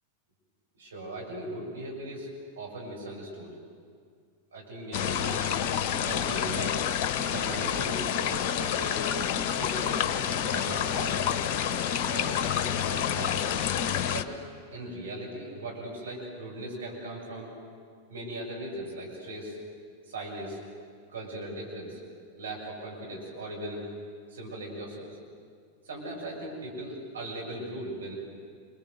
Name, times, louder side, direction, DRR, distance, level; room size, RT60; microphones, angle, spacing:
voice 1, 0.8-3.5 4.5-5.5 6.0-6.8 7.2-9.1 9.6-10.1 10.5-11.5 12.1-13.6 14.1-14.3 14.7-17.5 18.1-19.6 20.1-20.6 21.1-22.0 22.4-23.9 24.3-25.1 25.8-28.1, right 1 dB, 70° right, -3 dB, 6.7 m, -38 dB
sound 1, 4.9-14.2, left 9 dB, 40° left, 1.2 m, -28 dB
28.0 x 22.5 x 7.9 m, 2.1 s
figure-of-eight pair, 90°, 0 cm